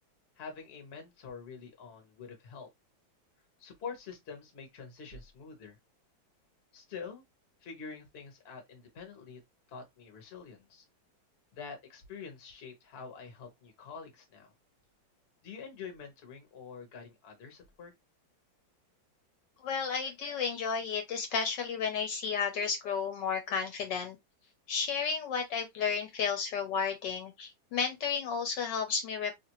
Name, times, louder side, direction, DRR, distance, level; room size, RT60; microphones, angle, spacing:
voice 1, 0.4-2.7 3.6-5.8 6.7-7.2 7.6-9.4 9.7-10.8 11.5-14.5 15.4-17.9, left 5 dB, 45° left, 0.9 m, -46 dB
voice 2, 19.6-24.2 24.7-29.4, left 6 dB, 70° left, 1.2 m, -32 dB
2.9 x 2.5 x 2.8 m
omnidirectional pair, 2.1 m